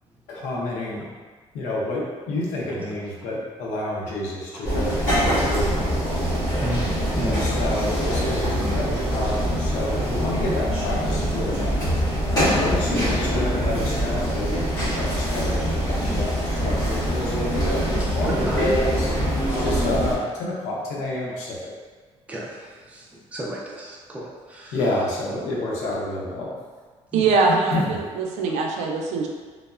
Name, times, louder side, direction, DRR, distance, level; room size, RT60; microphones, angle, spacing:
voice 1, 0.3-1.1 1.5-5.9 7.2-11.8 12.3-17.3 17.9-19.1 19.6-21.7 24.7-26.5 27.5-27.9, left 1 dB, 90° left, -4 dB, 0.6 m, -29 dB
sound 1, 4.6-20.2, equal, 30° left, 1.2 m, -24 dB
voice 2, 6.6-7.9 8.6-8.8 10.5-10.6 14.8-15.0 18.0-19.2 22.3-24.9 27.1-27.4, right 1 dB, 10° right, -4 dB, 0.4 m, -34 dB
voice 3, 27.1-29.3, right 4 dB, 80° right, 0 dB, 0.4 m, -22 dB
3.0 x 2.0 x 2.3 m, 1.4 s
cardioid pair, 160°, 12 cm